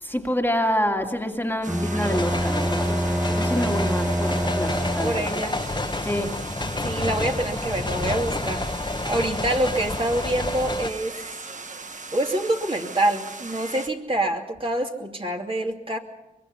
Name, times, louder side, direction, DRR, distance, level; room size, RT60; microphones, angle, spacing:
voice 1, 0.0-5.3 6.0-6.4, equal, 15° left, 3 dB, 2.1 m, -27 dB
sound 1, 1.6-13.9, right 3 dB, 50° right, 1.4 m, -39 dB
Bowed string instrument, 1.7-5.6, equal, 5° right, 0.7 m, -26 dB
sound 2, 2.0-10.9, left 2 dB, 30° left, 1.3 m, -29 dB
voice 2, 5.0-5.6 6.6-8.7 9.0-11.2 12.1-16.0, right 1 dB, 35° right, 1 dB, 2.8 m, -26 dB
24.0 x 21.0 x 5.6 m, 0.98 s
cardioid pair, 55°, 16 cm